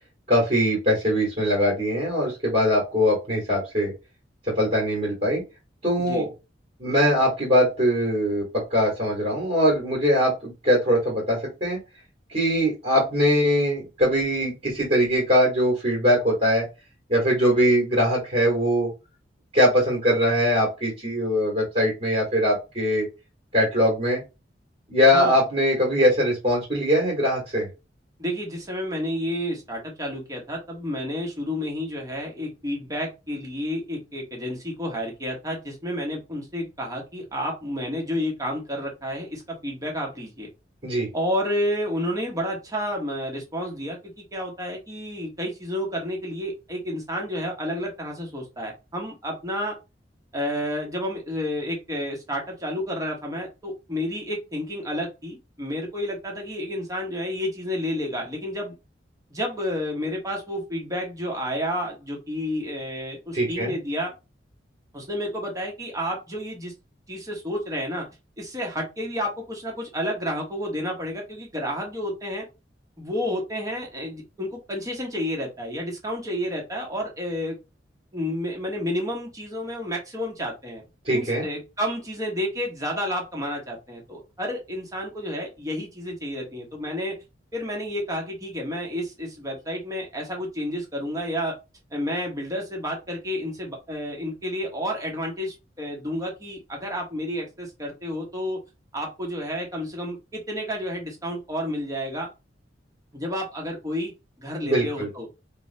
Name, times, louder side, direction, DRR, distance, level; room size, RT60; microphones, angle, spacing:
voice 1, 0.3-3.9 4.5-5.4 5.8-6.3 6.8-11.8 12.3-16.7 17.1-18.9 19.5-23.0 23.5-24.2 24.9-27.7 40.8-41.1 63.3-63.7 81.0-81.4 104.6-105.1, equal, 35° right, -4 dB, 1.4 m, -22 dB
voice 2, 28.2-40.5 41.1-49.7 50.3-58.8 59.3-64.1 64.9-66.7 67.1-68.0 68.4-72.4 73.0-77.6 78.1-80.8 81.1-87.1 87.5-91.5 91.9-98.6 98.9-102.3 103.1-104.1 104.4-105.3, equal, 20° right, 0 dB, 1.1 m, -30 dB
4.5 x 2.1 x 2.6 m, 0.27 s
head